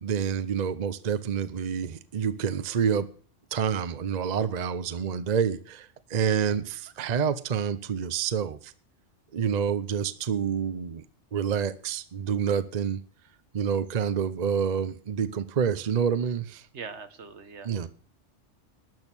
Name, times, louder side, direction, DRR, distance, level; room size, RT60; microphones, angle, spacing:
voice 1, 0.0-3.1 3.5-8.7 9.3-11.0 11.3-13.0 13.5-16.6 17.6-17.9, right 7 dB, 40° right, 13 dB, 0.7 m, -28 dB
voice 2, 16.7-17.9, right 5 dB, 70° right, 11 dB, 1.5 m, -42 dB
12.5 x 6.4 x 8.8 m, 0.43 s
omnidirectional pair, 1.2 m